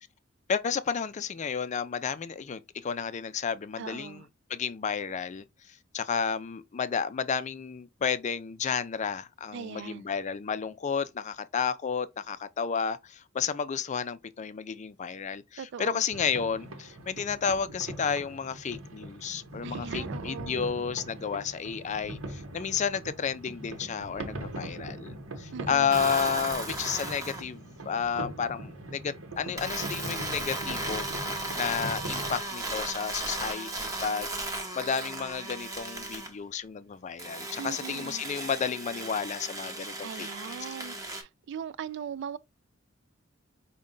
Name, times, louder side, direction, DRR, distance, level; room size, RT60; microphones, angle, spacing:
voice 1, 0.5-4.2 4.5-5.4 5.9-25.1 25.4-31.1 31.6-34.3 34.7-40.3, left 6 dB, 35° left, 0.4 m, -32 dB
voice 2, 3.8-4.3 9.5-10.1 15.6-16.0 19.6-20.6 25.5-26.0 37.6-38.2 40.0-42.4, right 7 dB, 60° right, 0.3 m, -40 dB
sound 1, 16.1-32.4, right 1 dB, 85° right, 0.9 m, -41 dB
sound 2, 25.9-27.5 29.6-36.3 37.2-41.2, right 2 dB, 15° right, 0.8 m, -36 dB
5.0 x 2.2 x 3.7 m
head